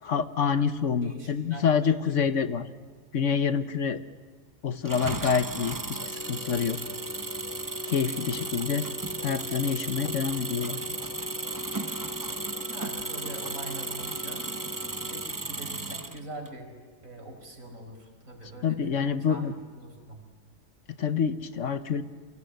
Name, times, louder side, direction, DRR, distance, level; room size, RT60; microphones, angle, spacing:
voice 1, 0.0-2.7 3.1-4.0 4.6-6.8 7.9-8.9 9.2-10.9 18.6-19.5 20.9-22.0, left 6 dB, 65° left, 12 dB, 1.3 m, -27 dB
voice 2, 1.0-1.9 12.5-14.5 15.0-16.7 17.0-20.2, right 2 dB, 75° right, 4 dB, 5.2 m, -43 dB
Engine, 4.8-16.5, right 3 dB, 20° right, 0.7 m, -35 dB
sound 1, 5.9-15.3, left 2 dB, 10° left, 1.2 m, -41 dB
29.5 x 25.0 x 8.1 m, 1.5 s
omnidirectional pair, 1.4 m